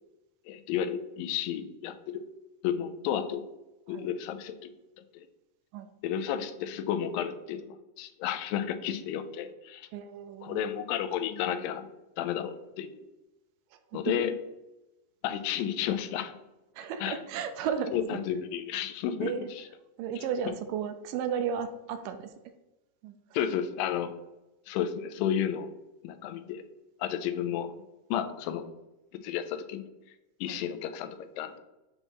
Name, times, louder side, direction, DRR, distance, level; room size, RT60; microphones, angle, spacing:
voice 1, 0.5-2.2 2.6-3.5 3.9-4.7 5.1-5.3 6.0-9.9 10.4-11.9 12.2-13.1 13.9-14.3 15.2-16.4 17.0-17.2 17.9-19.6 23.3-24.1 24.7-25.7 26.0-26.6 27.0-27.7 28.1-28.7 29.1-29.9 30.4-31.6, left 9 dB, 90° left, 9 dB, 2.3 m, -32 dB
voice 2, 9.9-10.7 13.7-14.2 16.8-18.2 19.2-19.5 20.0-22.3 23.0-23.2 30.5-30.6, right 7 dB, 80° right, 9 dB, 2.1 m, -34 dB
7.7 x 3.0 x 4.5 m, 0.98 s
omnidirectional pair, 3.9 m